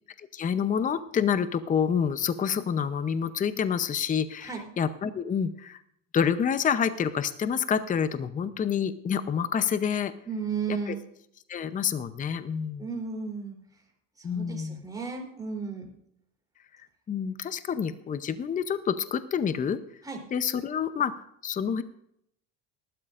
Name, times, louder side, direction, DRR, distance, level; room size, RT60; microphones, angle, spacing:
voice 1, 0.2-5.8 6.1-10.1 10.7-10.9 11.5-12.8 14.2-14.8 17.1-19.8 20.3-21.8, left 7 dB, 25° left, 12 dB, 0.7 m, -28 dB
voice 2, 10.2-11.0 12.8-13.6 14.2-15.9 20.0-20.2, right 5 dB, 10° right, 0 dB, 3.4 m, -34 dB
19.0 x 12.0 x 2.5 m, 0.72 s
cardioid pair, 120°, 33 cm